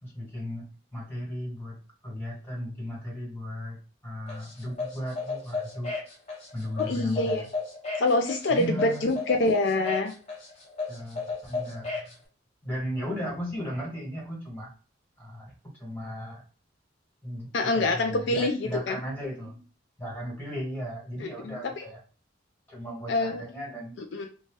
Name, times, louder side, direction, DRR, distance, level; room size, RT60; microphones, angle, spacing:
voice 1, 0.0-5.9 6.5-7.5 8.5-9.1 10.9-12.0 12.6-14.7 15.2-16.4 17.2-19.6 20.0-22.0 22.7-24.0, equal, 10° left, -5 dB, 1.5 m, -36 dB
sound 1, 4.3-12.1, left 4 dB, 35° left, 0.9 m, -34 dB
voice 2, 6.8-7.4 8.0-10.1 17.5-19.0 21.2-21.9 23.1-23.4 24.1-24.3, left 2 dB, 65° left, 4 dB, 0.4 m, -26 dB
2.8 x 2.3 x 3.1 m, 0.37 s
head